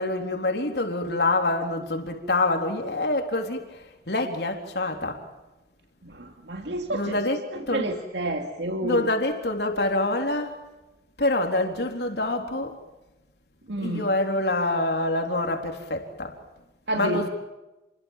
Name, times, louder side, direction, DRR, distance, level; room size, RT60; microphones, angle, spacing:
voice 1, 0.0-5.3 6.9-7.9 8.8-10.5 11.2-12.8 13.8-16.4 16.9-17.3, left 2 dB, 70° left, 3.9 m, -26 dB
voice 2, 6.0-7.2 7.7-9.1 13.7-14.1 16.9-17.2, right 1 dB, 90° right, 2.5 m, -29 dB
30.0 x 23.5 x 7.5 m
head